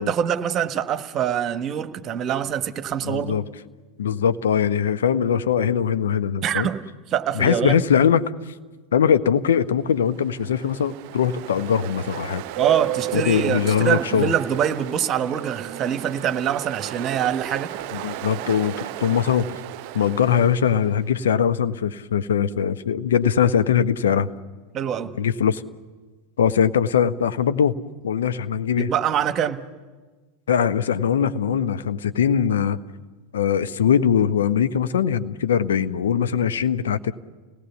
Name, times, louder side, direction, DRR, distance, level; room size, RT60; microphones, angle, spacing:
voice 1, 0.0-3.4 6.4-6.8 7.1-7.8 12.6-17.7 24.7-25.1 28.8-29.6, right 9 dB, 35° right, 11 dB, 1.3 m, -24 dB
voice 2, 3.0-3.4 4.0-6.7 7.3-8.3 8.9-12.4 13.1-14.3 17.9-18.7 19.0-19.5 19.9-24.3 25.2-25.6 26.4-27.8 28.0-28.9 30.5-32.8 33.3-37.1, left 8 dB, 70° left, 12 dB, 0.9 m, -21 dB
Ocean, 10.0-21.1, right 16 dB, 50° right, 0.7 m, -34 dB
29.5 x 18.0 x 7.2 m, 1.3 s
figure-of-eight pair, 85°, 0 cm